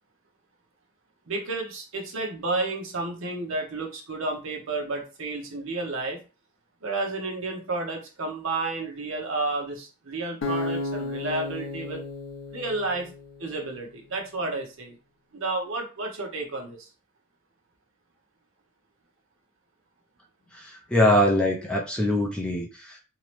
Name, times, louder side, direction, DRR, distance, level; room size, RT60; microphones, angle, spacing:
voice 1, 1.3-6.2 6.8-12.0 12.5-13.1 13.4-14.9 15.3-16.9, right 3 dB, 65° right, 2 dB, 0.7 m, -31 dB
Acoustic guitar, 10.4-13.6, left 2 dB, 65° left, 0.5 m, -33 dB
voice 2, 20.5-23.0, left 1 dB, 5° left, -1 dB, 0.3 m, -23 dB
2.8 x 2.0 x 3.0 m, 0.32 s
head